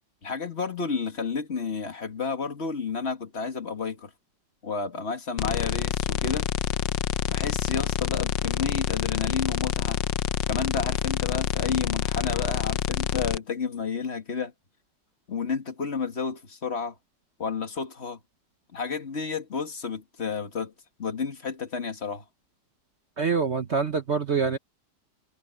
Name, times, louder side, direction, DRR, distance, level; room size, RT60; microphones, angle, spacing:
voice 1, 0.2-4.1 4.6-6.5 7.3-10.0 10.5-14.5 15.3-17.0 17.4-18.2 18.7-20.7 21.0-22.2, left 5 dB, 35° left, 2.1 m, -31 dB
sound 1, 5.4-13.4, left 11 dB, 85° left, 1.4 m, -27 dB
voice 2, 23.2-24.6, right 5 dB, 45° right, 1.1 m, -25 dB
omnidirectional pair, 1.9 m